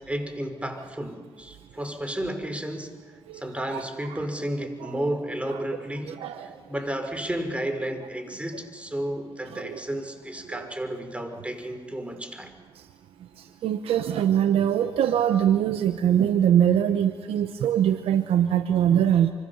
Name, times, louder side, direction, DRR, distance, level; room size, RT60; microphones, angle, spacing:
voice 1, 0.0-6.2 6.7-12.6, right 1 dB, 15° right, 7 dB, 5.4 m, -32 dB
voice 2, 13.6-19.3, right 10 dB, 90° right, 9 dB, 1.2 m, -22 dB
28.0 x 25.5 x 7.3 m, 1.4 s
supercardioid pair, 60°, 10 cm